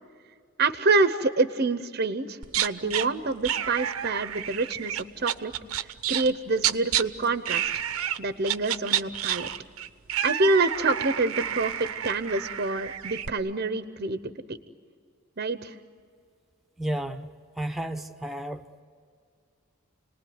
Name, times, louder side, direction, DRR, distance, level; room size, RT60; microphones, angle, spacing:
voice 1, 0.6-5.5 6.1-7.7 8.2-9.5 10.2-14.6 15.4-15.7, right 3 dB, 45° right, 11 dB, 0.8 m, -27 dB
sound 1, 2.4-3.1 3.4-7.0 7.5-8.2 8.4-13.3, right 10 dB, 75° right, 0.8 m, -29 dB
voice 2, 16.8-17.3 17.6-18.7, right 1 dB, ahead, 8 dB, 0.9 m, -32 dB
30.0 x 20.0 x 9.5 m, 2.2 s
head